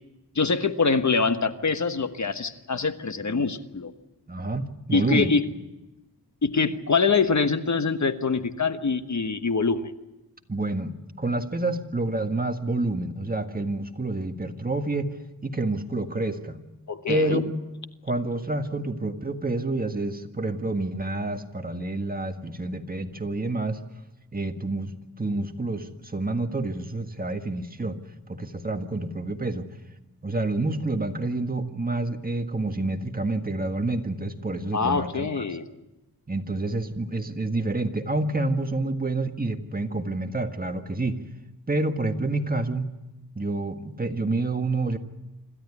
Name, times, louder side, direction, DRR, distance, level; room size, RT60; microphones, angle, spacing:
voice 1, 0.3-3.9 4.9-5.4 6.4-9.9 16.9-17.4 34.7-35.7, left 4 dB, 45° left, 9 dB, 1.3 m, -24 dB
voice 2, 4.3-5.3 10.5-15.1 15.4-16.6 17.1-17.5 18.0-23.8 24.3-28.0 28.3-29.7 30.2-35.3 36.3-41.2 41.7-42.9 43.3-45.0, right 2 dB, 20° right, 6 dB, 1.7 m, -28 dB
26.5 x 13.0 x 9.8 m, 1.0 s
wide cardioid pair, 80°, 40 cm